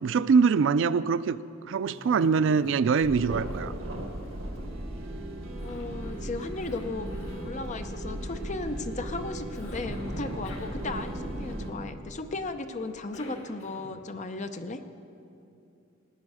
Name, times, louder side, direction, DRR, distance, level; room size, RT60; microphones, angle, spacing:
voice 1, 0.0-1.4 1.7-3.7, right 5 dB, 65° right, 16 dB, 0.3 m, -23 dB
Cough, 1.9-2.7 3.0-5.0 5.6-7.6 9.5-11.5 12.8-14.1, left 1 dB, 85° left, 1.8 m, -47 dB
sound 1, 3.0-11.7, right 1 dB, 80° right, 1.6 m, -36 dB
voice 2, 5.6-14.8, left 3 dB, 35° left, 8 dB, 0.6 m, -36 dB
18.0 x 9.8 x 4.9 m, 2.7 s
head